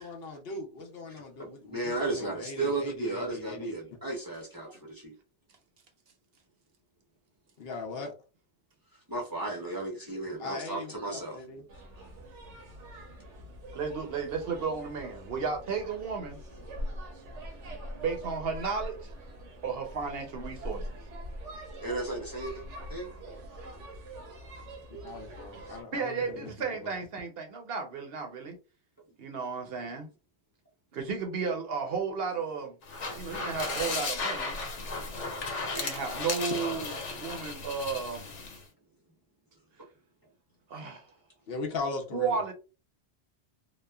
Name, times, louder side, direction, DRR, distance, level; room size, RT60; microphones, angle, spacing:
voice 1, 0.0-3.7 7.6-8.1 10.4-11.6 25.0-26.9 41.5-42.4, left 3 dB, 60° left, 0.8 m, -39 dB
voice 2, 1.1-5.1 9.1-11.4 21.8-22.6 22.9-23.1 35.7-35.9, right 2 dB, 25° right, 0.5 m, -34 dB
sound 1, 11.7-25.8, equal, 85° right, 1.1 m, -43 dB
voice 3, 13.7-16.4 17.9-19.1 19.6-20.9 25.9-28.6 29.2-30.1 30.9-32.7 33.1-34.6 35.7-38.3 40.7-41.0 42.1-42.5, right 5 dB, 65° right, 0.8 m, -33 dB
sound 2, 32.8-38.6, left 3 dB, 90° left, 1.1 m, -35 dB
3.0 x 2.1 x 2.2 m
omnidirectional pair, 1.2 m